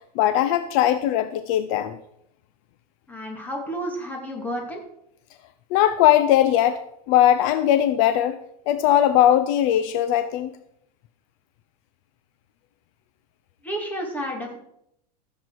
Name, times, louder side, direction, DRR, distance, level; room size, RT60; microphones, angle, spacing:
voice 1, 0.2-2.0 5.7-6.8 7.1-8.4 8.7-10.5, left 11 dB, 50° left, 11 dB, 0.7 m, -19 dB
voice 2, 3.1-4.8 13.6-14.6, equal, 10° left, 1 dB, 2.3 m, -31 dB
15.0 x 7.5 x 4.7 m, 0.77 s
supercardioid pair, 155°, 21 cm